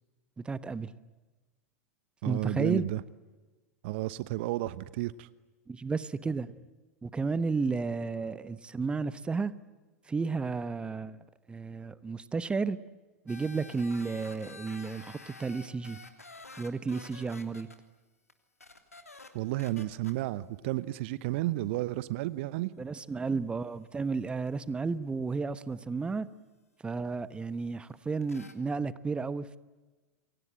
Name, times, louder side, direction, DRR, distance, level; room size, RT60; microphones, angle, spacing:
voice 1, 0.4-0.9 2.3-2.9 5.7-6.6 7.0-9.5 10.1-11.2 11.5-12.8 13.2-16.0 16.6-17.7 22.8-26.3 26.8-29.6, right 4 dB, 10° right, 1.1 m, -32 dB
voice 2, 2.2-3.0 3.8-5.3 19.3-22.7, right 16 dB, 50° right, 0.9 m, -32 dB
sound 1, 13.3-17.8 18.3-18.4 18.6-19.3 19.6-20.1 24.5-24.6 28.2-28.5, left 3 dB, 80° left, 3.2 m, -49 dB
29.0 x 23.5 x 8.8 m
figure-of-eight pair, 90°, 8 cm